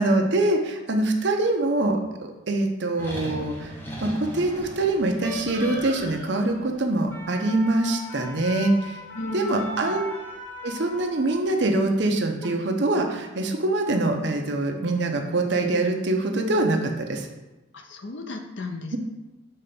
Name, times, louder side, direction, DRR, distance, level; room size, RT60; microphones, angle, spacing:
voice 1, 0.0-2.0 2.5-3.7 4.0-9.0 9.3-10.1 10.6-17.3 18.9-19.0, right 2 dB, 65° right, 3 dB, 0.8 m, -24 dB
sound 1, 3.0-11.4 12.2-12.5, equal, 10° left, 0.9 m, -37 dB
voice 2, 9.1-10.0 17.7-19.0, left 2 dB, 70° left, 5 dB, 0.7 m, -35 dB
5.6 x 3.3 x 5.4 m, 1.1 s
head